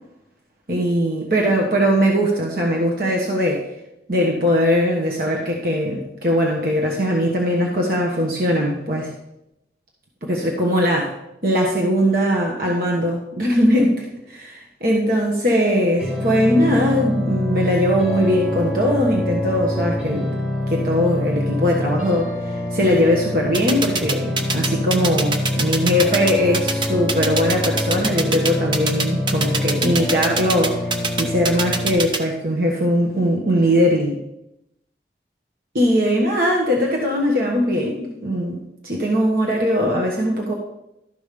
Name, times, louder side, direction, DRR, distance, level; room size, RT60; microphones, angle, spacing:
voice 1, 0.7-3.6 4.1-9.1 10.2-11.1 11.4-20.3 20.7-30.8 31.2-34.2 35.7-40.5, equal, 55° right, -2 dB, 1.2 m, -20 dB
sound 1, 16.0-32.0, left 1 dB, 5° right, 2.6 m, -25 dB
sound 2, 23.5-32.2, right 3 dB, 25° right, 0.7 m, -23 dB
12.5 x 5.0 x 5.2 m, 0.88 s
head